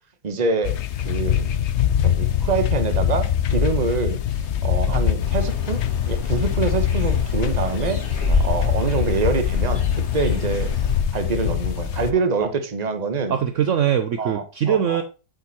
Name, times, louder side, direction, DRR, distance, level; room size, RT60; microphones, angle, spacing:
voice 1, 0.2-0.8 1.0-1.5 2.0-4.2 4.6-8.0 8.4-9.8 10.1-10.7 11.1-13.3 14.2-15.0, right 4 dB, 30° right, 0.9 m, -25 dB
sound 1, 0.6-12.1, left 9 dB, 90° left, 0.6 m, -23 dB
sound 2, 5.2-11.0, left 3 dB, 40° left, 1.8 m, -29 dB
voice 2, 13.3-15.0, right 9 dB, 70° right, 0.7 m, -22 dB
8.6 x 5.3 x 4.1 m
omnidirectional pair, 2.0 m